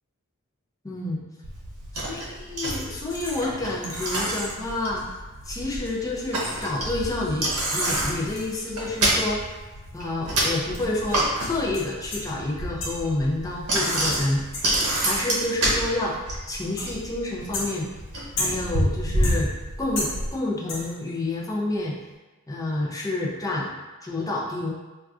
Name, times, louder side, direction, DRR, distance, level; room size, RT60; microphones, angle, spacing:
voice 1, 0.8-1.2 2.0-5.1 5.4-9.4 9.9-14.4 15.0-17.9 18.4-19.5 19.8-22.0 22.5-23.7 24.0-24.7, left 2 dB, 15° left, -4 dB, 0.4 m, -29 dB
Bicycle, 1.4-20.3, right 1 dB, 80° right, 0.7 m, -28 dB
sound 1, 3.1-3.5 4.0-4.3 5.0-5.1 5.4-5.5 5.9-9.6 9.9-10.0 10.7-12.4 12.8-13.2 13.7-15.0 15.7-16.1 16.8-17.2 17.5-18.9 19.2-19.7 20.0-20.4 20.7-21.1, left 2 dB, 60° left, 0.6 m, -36 dB
3.7 x 2.3 x 2.3 m, 1.2 s
head